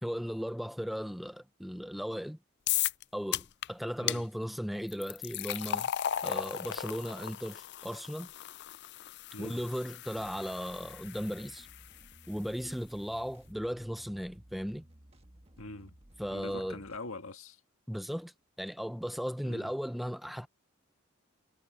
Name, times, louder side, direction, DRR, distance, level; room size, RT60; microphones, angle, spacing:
voice 1, 0.0-2.4 3.1-5.9 6.2-8.3 9.4-11.7 12.3-14.8 16.2-16.8 17.9-18.3 18.6-20.5, equal, ahead, 0.6 m, -36 dB
sound 1, 2.7-3.0 3.3-3.7 4.1-4.2 4.9-12.0, left 11 dB, 55° left, 0.4 m, -36 dB
sound 2, 10.0-17.0, equal, 30° right, 1.6 m, -58 dB
voice 2, 15.6-16.0 16.3-17.6 19.4-19.7, left 2 dB, 75° left, 1.8 m, -43 dB
head